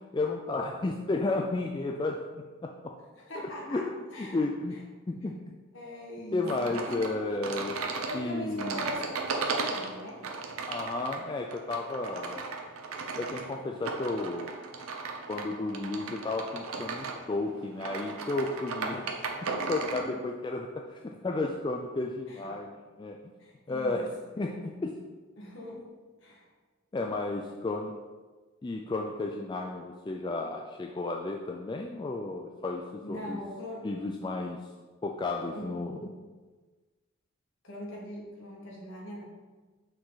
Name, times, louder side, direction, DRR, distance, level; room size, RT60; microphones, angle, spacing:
voice 1, 0.1-2.9 3.7-3.9 4.2-4.8 5.1-5.4 6.3-7.8 8.1-8.9 10.7-12.5 13.2-14.5 15.3-19.1 19.4-23.2 23.7-24.1 24.4-25.0 26.9-27.9 28.6-33.4 33.8-34.6 35.0-36.1, left 2 dB, 20° left, 1 dB, 0.3 m, -33 dB
voice 2, 3.1-4.4 4.7-4.8 5.7-7.0 8.0-10.2 19.4-20.3 22.3-22.5 23.4-24.7 25.4-25.9 26.2-26.5 33.0-33.9 35.5-35.7 37.6-39.2, equal, 60° left, -3 dB, 1.7 m, -42 dB
sound 1, 6.5-20.1, right 4 dB, 85° right, 0.7 m, -36 dB
6.2 x 4.7 x 4.0 m, 1.3 s
head